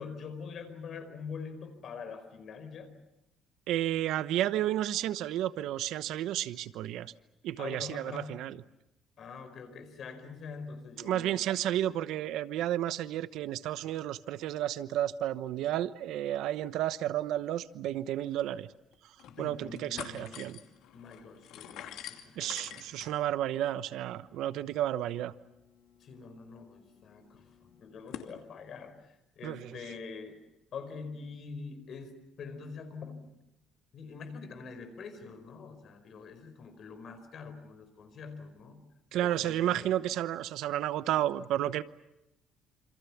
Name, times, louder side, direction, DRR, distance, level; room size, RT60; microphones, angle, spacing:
voice 1, 0.0-2.9 7.6-8.4 9.2-11.4 19.3-20.6 20.9-22.9 26.0-30.4 30.7-33.2 33.9-38.9 39.2-40.0, left 5 dB, 40° left, 8 dB, 4.8 m, -45 dB
voice 2, 3.7-7.1 7.4-8.5 11.0-18.7 19.4-20.6 22.4-25.3 29.4-29.6 39.1-41.8, right 12 dB, 70° right, 14 dB, 0.9 m, -32 dB
sound 1, 18.0-18.1 18.3-18.4 18.9-19.4 19.7-28.3, left 10 dB, 75° left, 2.6 m, -49 dB
28.0 x 27.0 x 7.2 m, 0.89 s
cardioid pair, 180°, 0 cm